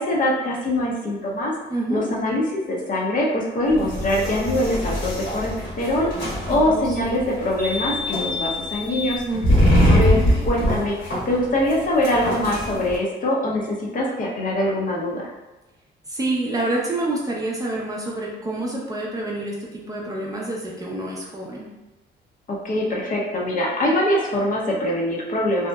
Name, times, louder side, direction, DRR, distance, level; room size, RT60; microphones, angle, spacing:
voice 1, 0.0-1.5 1.9-6.1 6.5-9.2 9.8-10.9 11.3-15.3 22.5-25.7, left 1 dB, 45° left, -3 dB, 0.6 m, -23 dB
voice 2, 1.7-2.1 6.5-7.2 9.3-9.8 16.1-21.7, right 2 dB, 15° right, -4 dB, 0.5 m, -28 dB
sound 1, 3.7-13.0, equal, 60° left, 1.2 m, -23 dB
2.7 x 2.1 x 2.2 m, 1.0 s
cardioid pair, 90°, 20 cm